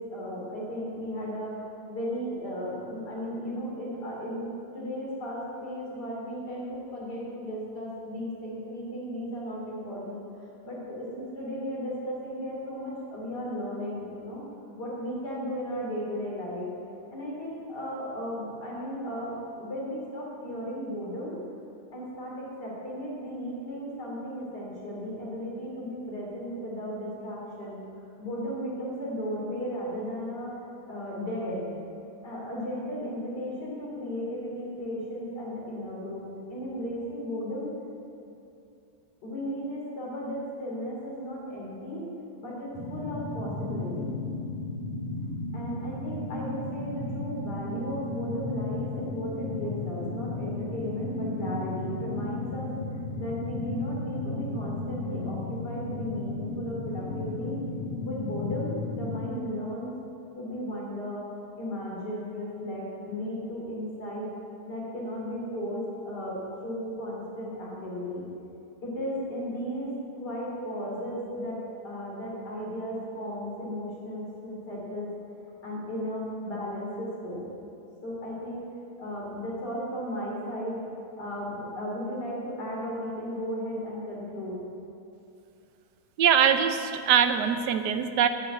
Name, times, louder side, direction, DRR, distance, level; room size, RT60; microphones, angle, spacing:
voice 1, 0.0-1.6 1.9-4.5 4.7-10.2 10.6-14.4 14.8-16.7 17.1-21.4 21.9-30.5 30.9-31.7 32.2-37.7 39.2-42.0 42.4-44.1 45.5-52.7 53.1-57.6 58.0-59.9 60.4-61.3 61.6-64.3 64.7-68.3 68.8-69.9 70.2-75.1 75.6-77.4 78.0-78.6 79.0-80.8 81.2-84.6, equal, 80° left, -4 dB, 3.9 m, -35 dB
sound 1, 42.7-59.2, left 2 dB, 10° left, 2.2 m, -34 dB
voice 2, 86.2-88.3, right 8 dB, 90° right, 9 dB, 1.4 m, -22 dB
10.5 x 9.9 x 7.5 m, 2.6 s
omnidirectional pair, 1.7 m